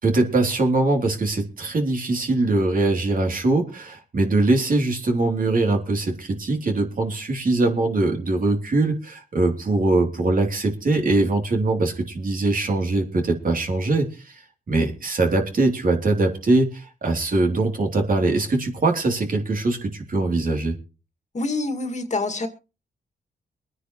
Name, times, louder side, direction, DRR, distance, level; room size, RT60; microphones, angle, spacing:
voice 1, 0.0-14.4 14.7-20.7, right 2 dB, 50° right, 3 dB, 3.2 m, -22 dB
voice 2, 21.3-22.5, left 2 dB, 40° left, 7 dB, 2.2 m, -26 dB
23.5 x 9.8 x 3.1 m, 0.32 s
cardioid pair, 80°, 18 cm